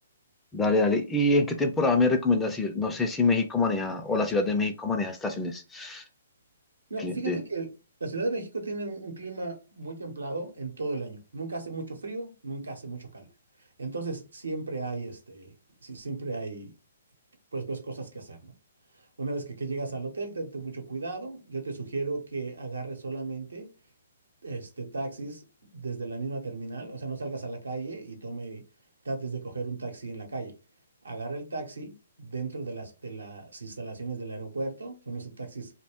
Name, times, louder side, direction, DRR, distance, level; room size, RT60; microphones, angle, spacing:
voice 1, 0.5-6.0 7.0-7.4, left 3 dB, 10° left, 0.4 m, -25 dB
voice 2, 6.9-7.7 8.0-13.3 13.8-15.5 15.8-16.7 17.5-18.5 19.2-23.7 24.4-28.6 29.0-30.5 31.0-35.7, right 3 dB, 85° right, 0.9 m, -35 dB
2.4 x 2.1 x 3.4 m
hypercardioid pair, 135°, 0 cm